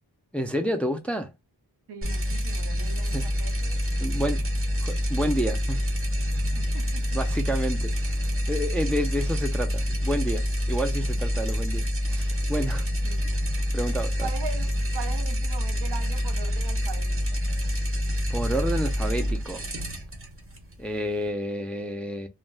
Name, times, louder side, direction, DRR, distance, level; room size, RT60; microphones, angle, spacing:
voice 1, 0.3-1.3 3.1-3.3 4.0-4.5 4.8-5.8 7.1-12.9 13.7-14.3 18.3-19.7 20.8-22.3, equal, 5° left, 0.3 m, -30 dB
voice 2, 1.9-4.2 6.6-7.2 11.3-11.5 13.0-13.5 14.2-17.4, right 5 dB, 85° right, 0.6 m, -41 dB
sound 1, 2.0-21.3, equal, 35° right, 0.7 m, -27 dB
2.4 x 2.1 x 3.2 m
wide cardioid pair, 95°, 39 cm